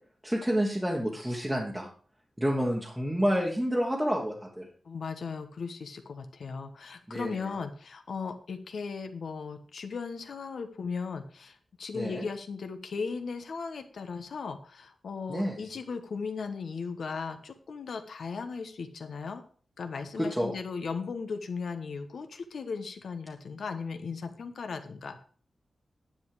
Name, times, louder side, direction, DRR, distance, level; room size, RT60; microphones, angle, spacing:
voice 1, 0.2-1.9 2.4-4.7 7.1-7.5 11.9-12.2 15.3-15.6 20.2-20.5, equal, 5° right, -2 dB, 1.3 m, -29 dB
voice 2, 4.8-19.4 19.8-25.2, left 5 dB, 65° left, 7 dB, 1.1 m, -37 dB
10.5 x 7.5 x 4.8 m, 0.44 s
wide cardioid pair, 170°, 0 cm